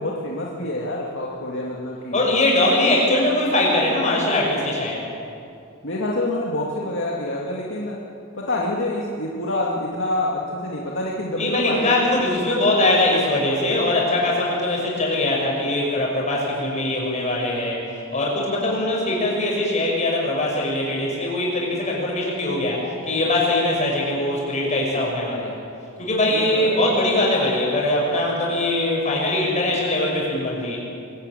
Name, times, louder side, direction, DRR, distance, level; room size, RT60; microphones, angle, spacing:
voice 1, 0.0-2.2 5.8-8.0 8.3-11.9 26.3-26.8, left 1 dB, 60° left, -3 dB, 2.4 m, -27 dB
voice 2, 2.1-5.1 11.3-25.6 26.0-30.8, left 1 dB, 35° left, -2 dB, 6.4 m, -22 dB
23.5 x 15.0 x 9.3 m, 2.5 s
head